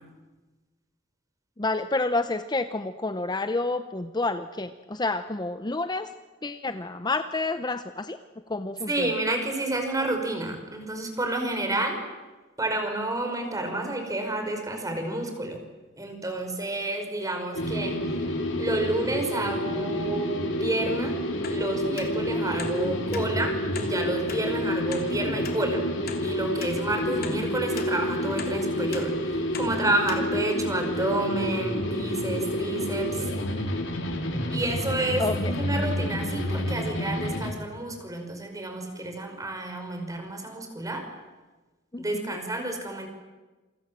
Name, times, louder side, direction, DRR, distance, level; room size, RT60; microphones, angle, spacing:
voice 1, 1.6-6.1 6.4-8.2 8.5-9.1 35.2-35.5 41.9-42.3, left 2 dB, 20° left, 10 dB, 0.8 m, -29 dB
voice 2, 8.9-12.0 12.6-15.6 16.0-18.3 18.6-21.2 21.5-25.8 26.2-33.2 34.5-35.3 35.6-41.0 42.0-43.1, right 2 dB, 20° right, 5 dB, 5.4 m, -30 dB
sound 1, 17.6-37.5, equal, 75° left, 4.3 m, -29 dB
sound 2, 21.4-21.6 22.0-22.1 22.6-22.7 23.1-23.3 23.7-23.9 24.3-24.4 24.9-25.0 25.4-25.6 26.1-26.2 26.6-26.7 27.2-27.4 27.7-27.9 28.4-28.5 28.9-29.1 29.5-29.7 30.1-30.2 30.7-30.8, left 7 dB, 55° left, 3.3 m, -38 dB
28.0 x 24.5 x 7.6 m, 1.2 s
head